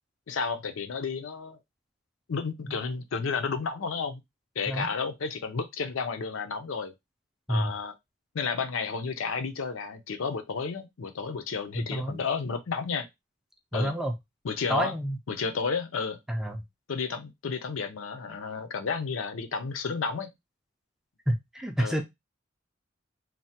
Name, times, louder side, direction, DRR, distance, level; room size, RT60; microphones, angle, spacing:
voice 1, 0.3-1.6 2.3-4.2 4.6-6.9 7.5-7.9 8.3-13.1 13.7-13.9 14.4-14.9 15.3-16.2 16.9-20.3 21.8-22.0, left 5 dB, 80° left, 0.5 m, -32 dB
voice 2, 11.7-12.2 13.7-14.1 14.7-15.2 16.3-16.6 21.3-22.0, equal, ahead, 0.3 m, -29 dB
3.2 x 2.1 x 2.7 m
head